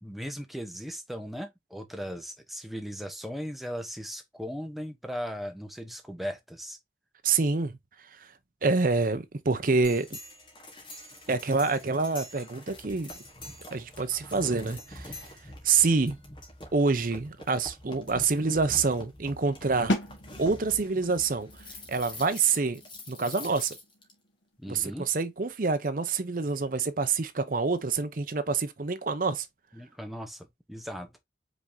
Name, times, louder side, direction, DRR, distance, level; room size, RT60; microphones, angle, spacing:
voice 1, 0.0-6.8 24.6-25.1 29.7-31.1, equal, ahead, 0.8 m, -38 dB
voice 2, 7.2-7.7 8.6-10.2 11.3-13.1 13.7-15.2 15.6-16.2 16.7-20.0 20.4-21.6 21.9-22.8 23.1-23.8 24.7-29.5, right 4 dB, 50° right, 0.6 m, -27 dB
sound 1, 9.8-24.1, left 1 dB, 25° left, 1.3 m, -45 dB
sound 2, 19.9-25.6, equal, 90° left, 1.2 m, -37 dB
5.2 x 3.5 x 2.7 m
head